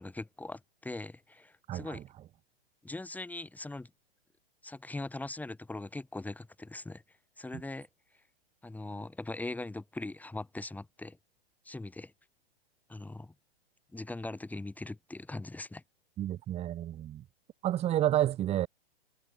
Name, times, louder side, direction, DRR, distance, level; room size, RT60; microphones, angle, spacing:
voice 1, 0.0-2.0 2.8-3.9 4.6-7.0 7.4-7.9 8.6-11.2 11.7-12.1 12.9-13.3 13.9-15.8, left 2 dB, 5° left, 3.9 m, -41 dB
voice 2, 1.7-2.1 16.2-17.2 17.6-18.7, right 12 dB, 20° right, 0.9 m, -30 dB
hypercardioid pair, 125°, 30 cm